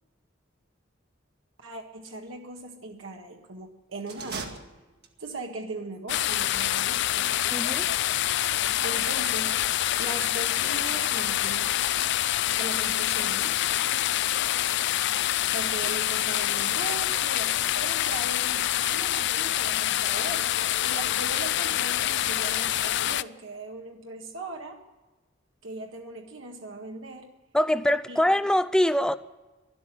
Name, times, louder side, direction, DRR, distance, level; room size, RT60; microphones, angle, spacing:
voice 1, 1.6-4.5 5.2-7.3 8.8-11.8 12.5-13.6 15.5-24.8 25.6-27.3 28.1-28.3, right 2 dB, 75° right, 1.7 m, -39 dB
sound 1, 4.0-5.4, right 4 dB, 55° right, 1.7 m, -39 dB
sound 2, 6.1-23.2, left 13 dB, 60° left, 0.4 m, -26 dB
voice 2, 7.5-7.9 27.5-29.2, left 1 dB, 5° left, 0.5 m, -23 dB
12.5 x 11.5 x 9.1 m
head